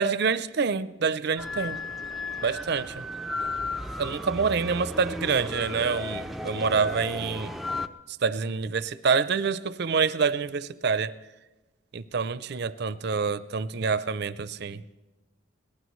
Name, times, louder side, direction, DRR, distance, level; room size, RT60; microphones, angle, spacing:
voice 1, 0.0-1.8 2.4-3.0 4.0-7.5 8.2-11.1 11.9-14.8, right 5 dB, 55° right, 0.5 m, -27 dB
sound 1, 1.4-7.9, left 2 dB, ahead, 0.4 m, -34 dB
22.0 x 18.0 x 3.1 m
head